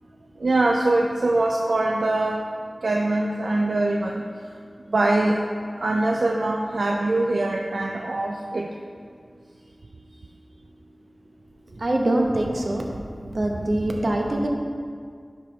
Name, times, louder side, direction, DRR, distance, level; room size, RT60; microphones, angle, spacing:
voice 1, 0.4-2.4 2.8-4.2 4.9-5.4 5.8-8.7, right 2 dB, 80° right, 1 dB, 0.4 m, -23 dB
voice 2, 11.8-12.9 13.2-14.5, right 1 dB, 65° right, 1 dB, 0.9 m, -23 dB
10.0 x 5.3 x 3.2 m, 2.1 s
wide cardioid pair, 70°, 0 cm